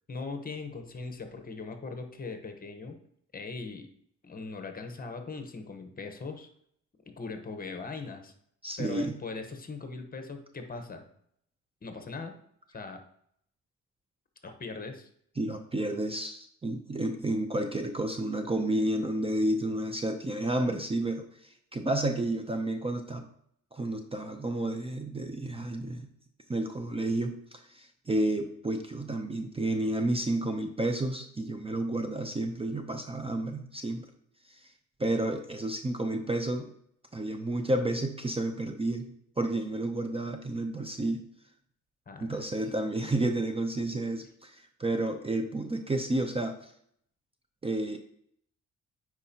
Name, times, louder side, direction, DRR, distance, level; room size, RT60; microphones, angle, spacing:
voice 1, 0.1-3.0 3.3-3.9 4.2-6.5 7.1-8.3 8.8-11.0 11.8-12.3 12.7-13.0 14.4-15.1 42.1-42.4, left 4 dB, 30° left, 6 dB, 1.1 m, -40 dB
voice 2, 8.6-9.2 15.4-23.2 23.7-26.1 26.5-34.1 34.4-34.7 35.0-36.7 37.1-41.3 42.2-46.7 47.6-48.0, right 1 dB, 20° right, 6 dB, 0.6 m, -31 dB
9.6 x 4.5 x 2.9 m, 0.68 s
cardioid pair, 90°, 30 cm